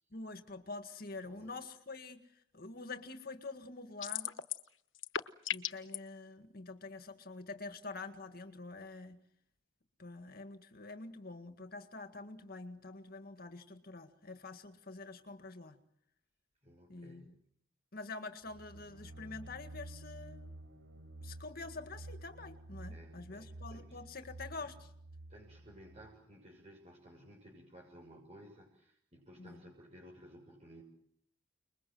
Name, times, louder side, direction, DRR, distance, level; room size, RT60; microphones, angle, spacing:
voice 1, 0.1-2.2 2.5-4.4 5.5-9.2 10.0-15.8 16.9-17.4 17.9-20.5 21.2-24.9 29.4-29.7, left 3 dB, 50° left, 8 dB, 1.9 m, -46 dB
sound 1, 4.0-4.7 4.9-6.0, left 10 dB, 80° left, 1.2 m, -36 dB
voice 2, 16.6-17.4 22.9-24.0 24.6-24.7 25.3-30.8, equal, 35° right, -1 dB, 6.5 m, -56 dB
sound 2, 18.4-26.1, right 1 dB, 70° right, 4.4 m, -50 dB
29.0 x 21.5 x 7.8 m, 0.70 s
head